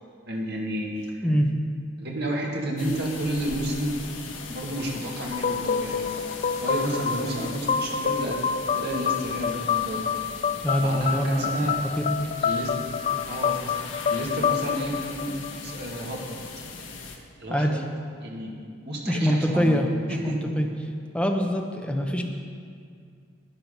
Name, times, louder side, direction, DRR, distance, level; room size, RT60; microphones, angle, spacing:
voice 1, 0.3-0.9 2.0-4.0 4.5-6.1 6.5-8.4 8.7-10.1 10.8-11.7 12.4-12.7 13.3-13.6 14.1-16.4 17.4-17.8 18.2-18.5 18.8-20.4, right 1 dB, 55° right, -2 dB, 1.9 m, -31 dB
sound 1, 2.8-17.2, left 4 dB, 70° left, 1.4 m, -39 dB
sound 2, 5.3-16.0, left 6 dB, 40° left, 0.3 m, -28 dB
voice 2, 10.6-12.3 17.5-17.8 19.0-19.9 20.2-20.9 21.1-22.2, equal, 5° left, 2 dB, 0.9 m, -24 dB
12.0 x 9.5 x 5.4 m, 2.2 s
head